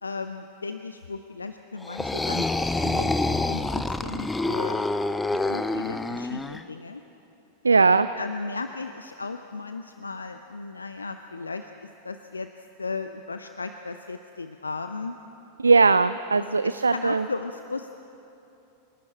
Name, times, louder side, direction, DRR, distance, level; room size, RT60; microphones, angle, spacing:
voice 1, 0.0-2.5 2.8-3.1 3.5-4.9 5.3-7.0 7.9-11.7 12.0-12.5 12.8-15.2 16.4-17.9, left 3 dB, 75° left, 8 dB, 0.6 m, -35 dB
sound 1, 1.8-6.6, left 2 dB, 10° left, 0.7 m, -27 dB
voice 2, 7.6-8.1 15.6-17.2, right 4 dB, 75° right, 14 dB, 0.4 m, -19 dB
26.0 x 12.0 x 8.9 m, 2.9 s
figure-of-eight pair, 90°, 0 cm